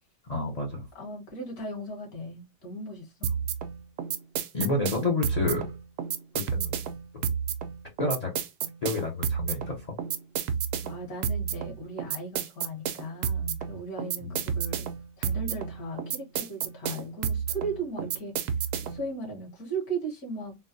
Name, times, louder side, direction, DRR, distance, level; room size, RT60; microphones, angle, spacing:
voice 1, 0.3-0.9 4.5-5.7 6.3-6.7 7.1-7.3 8.0-8.4 8.8-9.9 14.2-14.4, left 2 dB, 40° left, 0.6 m, -29 dB
voice 2, 1.0-3.4 10.8-14.9 15.2-20.6, right 2 dB, 65° left, 2.0 m, -37 dB
sound 1, 3.2-19.1, right 7 dB, 75° right, 1.1 m, -31 dB
3.9 x 2.2 x 2.6 m
omnidirectional pair, 1.8 m